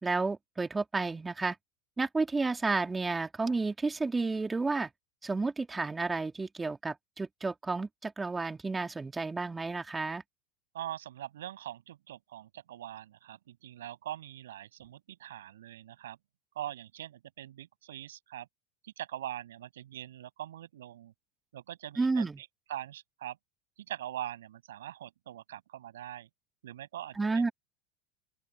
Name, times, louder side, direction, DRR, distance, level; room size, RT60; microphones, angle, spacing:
voice 1, 0.0-1.6 2.0-4.9 5.2-10.2 22.0-22.4 27.2-27.5, right 3 dB, 15° right, 2.6 m, -31 dB
voice 2, 10.7-16.2 16.6-18.5 18.8-21.1 21.5-23.4 23.9-26.3 26.6-27.5, right 12 dB, 80° right, 7.2 m, -42 dB
open air
hypercardioid pair, 90°, 0 cm